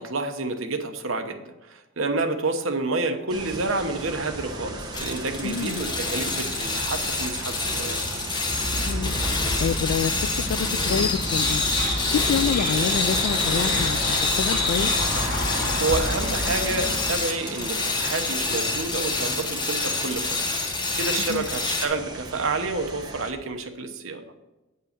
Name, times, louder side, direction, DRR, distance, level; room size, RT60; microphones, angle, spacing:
voice 1, 0.0-1.4 1.7-8.0 15.8-20.4 21.0-24.2, right 3 dB, 70° right, 6 dB, 1.0 m, -29 dB
sound 1, 3.3-23.3, right 2 dB, 20° right, 1.2 m, -36 dB
sound 2, 4.9-21.9, left 3 dB, 20° left, 1.1 m, -28 dB
voice 2, 5.4-5.8 8.7-9.1 9.6-11.6 12.1-14.9 21.2-21.5, left 7 dB, 70° left, 18 dB, 0.3 m, -27 dB
sound 3, 8.5-17.1, left 2 dB, 50° left, 2.3 m, -27 dB
8.6 x 5.6 x 6.6 m, 1.1 s
head